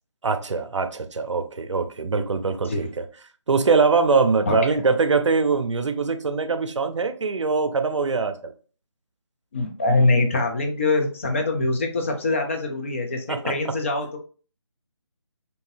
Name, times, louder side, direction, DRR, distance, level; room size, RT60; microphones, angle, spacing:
voice 1, 0.2-3.1 3.5-8.5 13.3-13.5, right 4 dB, 75° right, 0.5 m, -22 dB
voice 2, 9.5-14.2, left 2 dB, 25° left, 0.5 m, -23 dB
3.7 x 2.7 x 2.6 m
figure-of-eight pair, 155°, 16 cm